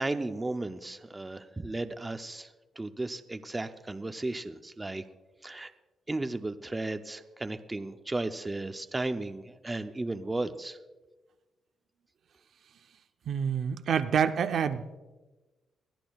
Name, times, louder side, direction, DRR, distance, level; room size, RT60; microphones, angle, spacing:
voice 1, 0.0-2.5 2.8-5.0 5.4-5.7 6.1-10.8, right 2 dB, 15° right, 9 dB, 0.5 m, -34 dB
voice 2, 13.3-15.0, right 7 dB, 60° right, 9 dB, 0.6 m, -27 dB
22.0 x 13.5 x 2.3 m, 1.2 s
cardioid pair, 130°, 0 cm